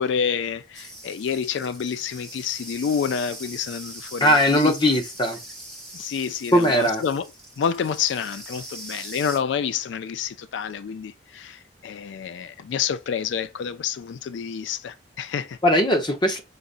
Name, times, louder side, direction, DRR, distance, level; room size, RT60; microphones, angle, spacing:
voice 1, 0.0-4.7 5.9-7.3 7.6-15.6, left 7 dB, 75° left, 0.3 m, -28 dB
sound 1, 0.7-9.4, right 1 dB, 5° left, 1.3 m, -41 dB
voice 2, 4.2-5.4 6.5-7.0 15.6-16.4, equal, 25° left, 0.8 m, -19 dB
4.9 x 4.0 x 2.5 m
head